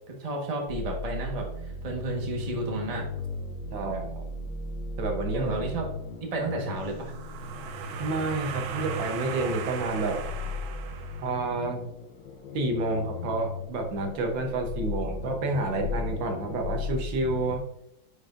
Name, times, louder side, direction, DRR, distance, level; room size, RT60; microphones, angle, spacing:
voice 1, 0.1-3.0 5.3-5.8 6.3-7.1, right 2 dB, 20° right, 0 dB, 1.2 m, -32 dB
sound 1, 0.7-17.6, left 3 dB, 65° left, 1.4 m, -37 dB
voice 2, 3.7-4.2 5.0-5.5 8.0-10.2 11.2-11.8 12.5-17.6, right 2 dB, 75° right, 3 dB, 1.7 m, -29 dB
sound 2, 6.9-11.6, right 7 dB, 90° right, 1.5 m, -36 dB
9.6 x 5.1 x 2.5 m, 0.75 s
omnidirectional pair, 2.1 m